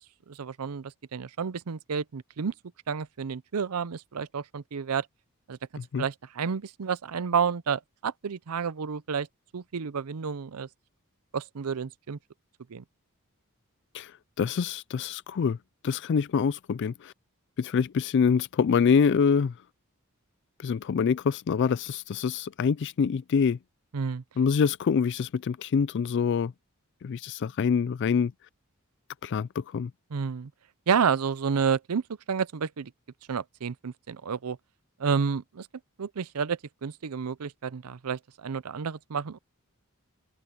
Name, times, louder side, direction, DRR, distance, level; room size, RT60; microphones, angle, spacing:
voice 1, 0.3-2.5 2.9-5.1 5.5-5.6 6.0-9.3 9.5-10.7 11.3-12.2 12.7-12.8 23.9-24.2 30.1-30.5 30.9-32.0 32.3-32.9 33.3-34.6 35.0-35.7 36.0-39.4, right 6 dB, 85° right, 0.6 m, -30 dB
voice 2, 14.4-15.6 15.8-17.1 17.6-19.5 20.6-23.6 24.4-26.5 27.0-28.3 29.2-29.9, left 6 dB, 55° left, 0.3 m, -25 dB
head